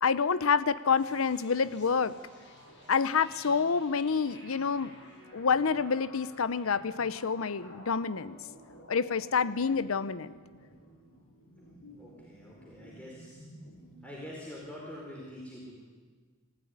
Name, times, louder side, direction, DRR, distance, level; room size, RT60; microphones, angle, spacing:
voice 1, 0.0-2.2 2.9-5.0 5.3-8.4 8.9-10.3, left 5 dB, 80° left, 16 dB, 0.7 m, -28 dB
sound 1, 1.0-14.6, left 1 dB, 60° left, 7.5 m, -53 dB
voice 2, 12.0-13.5 14.0-15.8, left 1 dB, 5° left, -4 dB, 4.4 m, -45 dB
26.0 x 15.0 x 9.6 m, 1.5 s
head